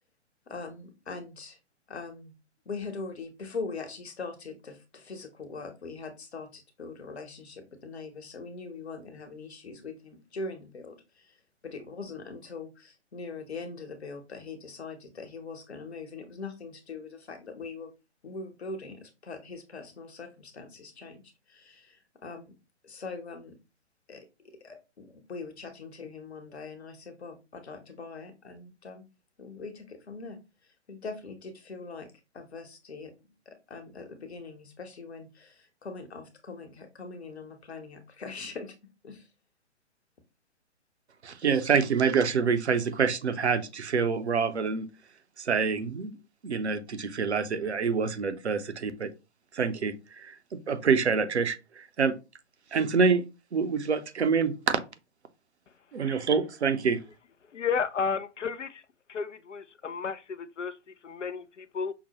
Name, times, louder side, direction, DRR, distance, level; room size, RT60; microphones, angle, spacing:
voice 1, 0.5-1.6 1.9-2.3 2.6-11.4 11.6-17.9 18.2-22.5 22.8-23.6 24.1-29.0 29.4-30.4 30.9-38.7 39.0-39.3, left 4 dB, 65° left, 1.1 m, -42 dB
voice 2, 41.2-44.9 45.4-46.2 46.4-49.1 49.5-52.1 52.7-53.2 53.5-54.8 55.9-57.0, right 5 dB, 65° right, 0.7 m, -26 dB
voice 3, 57.5-58.8 59.1-61.9, left 6 dB, 80° left, 0.5 m, -32 dB
5.8 x 2.1 x 2.9 m
figure-of-eight pair, 130°, 36 cm